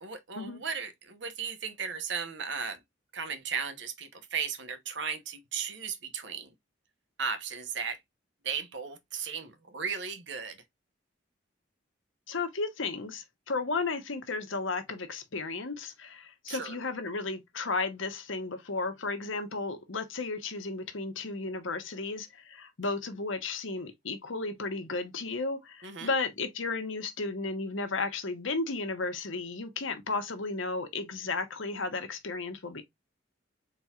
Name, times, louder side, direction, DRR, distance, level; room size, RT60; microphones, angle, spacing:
voice 1, 0.0-2.8 3.1-6.5 7.2-8.0 8.4-10.6 16.5-16.8 25.8-26.1, right 6 dB, 70° right, 1.0 m, -36 dB
voice 2, 12.3-32.8, left 3 dB, 85° left, 1.0 m, -34 dB
4.3 x 3.9 x 2.4 m
head